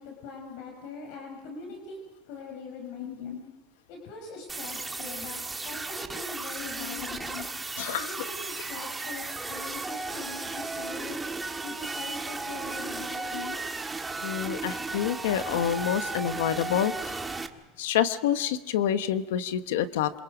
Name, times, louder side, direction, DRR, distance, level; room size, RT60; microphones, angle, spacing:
voice 1, 0.0-2.0 2.3-3.4 3.9-7.4 7.9-11.2 11.6-13.6 17.4-17.5, left 4 dB, 70° left, 1 dB, 5.5 m, -42 dB
voice 2, 3.0-3.4 6.8-7.1 7.3-7.4 7.8-8.1 13.3-13.6 14.2-17.2 17.8-20.1, left 10 dB, 90° left, 11 dB, 1.2 m, -28 dB
sound 1, 4.5-17.5, right 3 dB, 15° right, 1.7 m, -35 dB
27.5 x 27.0 x 5.2 m, 1.1 s
supercardioid pair, 115°, 0 cm